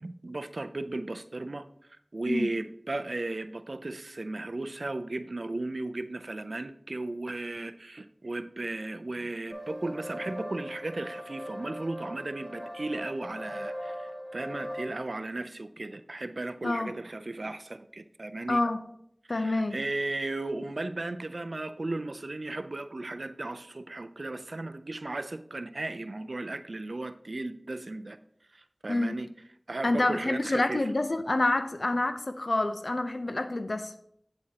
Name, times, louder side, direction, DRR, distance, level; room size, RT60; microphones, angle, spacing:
voice 1, 0.0-1.7 2.1-18.6 19.3-28.2 28.5-29.3 29.7-30.9, right 2 dB, 85° right, 11 dB, 0.4 m, -35 dB
sound 1, 9.5-14.8, equal, 5° left, 2.0 m, -39 dB
voice 2, 16.6-16.9 18.5-18.8 19.3-19.8 28.9-29.2 29.8-33.9, left 2 dB, 80° left, 8 dB, 0.6 m, -27 dB
8.5 x 7.7 x 2.9 m, 0.71 s
wide cardioid pair, 50°, 0 cm